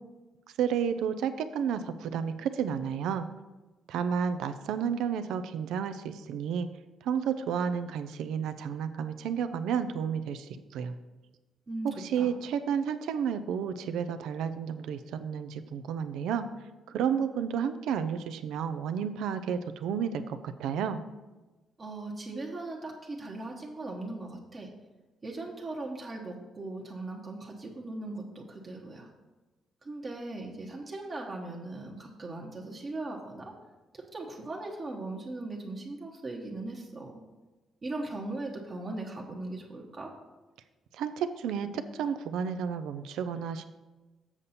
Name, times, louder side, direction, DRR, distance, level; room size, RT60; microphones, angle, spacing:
voice 1, 0.6-3.3 3.9-6.7 7.0-11.0 12.0-16.5 16.9-21.0 41.0-43.6, right 7 dB, 85° right, 10 dB, 0.5 m, -31 dB
voice 2, 11.7-12.3 21.8-24.7 25.2-29.1 29.8-33.5 33.9-37.1 37.8-40.1, right 2 dB, 30° right, 0 dB, 1.1 m, -39 dB
7.2 x 6.7 x 4.2 m, 1.2 s
cardioid pair, 120°, 0 cm